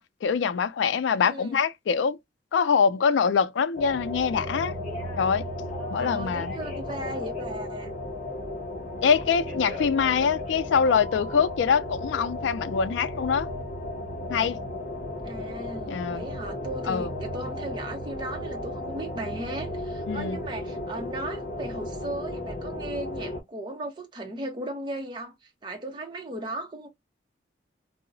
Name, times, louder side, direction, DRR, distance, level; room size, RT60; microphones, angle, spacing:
voice 1, 0.0-2.2 2.5-4.8 5.2-5.5 5.9-6.5 9.0-13.5 14.3-14.6 15.9-16.3 16.9-17.1 20.1-20.4, left 6 dB, 90° left, 0.3 m, -24 dB
voice 2, 1.2-1.6 5.9-7.9 15.2-26.9, right 1 dB, 25° right, 0.6 m, -36 dB
sound 1, 3.7-23.4, left 1 dB, 50° left, 0.7 m, -35 dB
Telephone, 4.8-5.3 5.7-7.4 9.1-10.6 10.9-11.5, left 2 dB, 35° left, 1.5 m, -41 dB
2.7 x 2.0 x 2.5 m
head